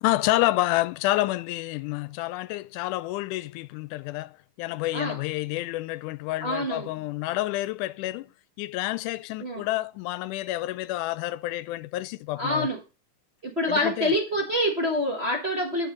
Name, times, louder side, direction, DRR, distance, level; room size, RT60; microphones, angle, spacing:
voice 1, 0.0-4.3 4.6-8.3 8.6-12.7 13.7-14.1, left 17 dB, 85° left, 2.0 m, -29 dB
voice 2, 6.4-6.9 9.4-9.6 12.3-12.8 13.4-15.9, left 1 dB, 65° right, 0.6 m, -26 dB
7.9 x 4.8 x 5.2 m
omnidirectional pair, 3.5 m